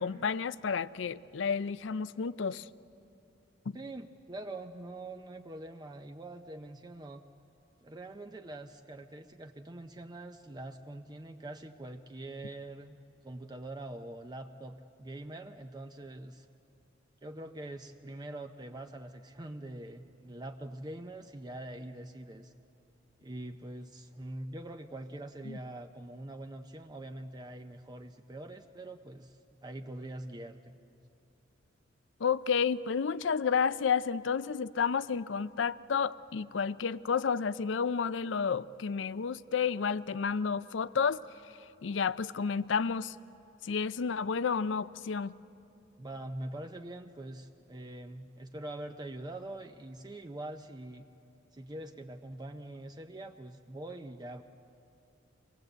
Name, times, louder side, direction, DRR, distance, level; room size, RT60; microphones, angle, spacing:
voice 1, 0.0-2.7 3.7-3.8 25.5-25.6 32.2-41.2 41.8-43.1 43.6-45.3, left 6 dB, 70° left, 17 dB, 0.5 m, -31 dB
voice 2, 3.7-7.2 7.8-13.0 13.2-16.5 17.2-22.5 23.2-30.8 46.0-51.1 51.5-54.4, right 1 dB, 20° right, 5 dB, 0.6 m, -44 dB
25.5 x 19.0 x 8.0 m, 2.8 s
head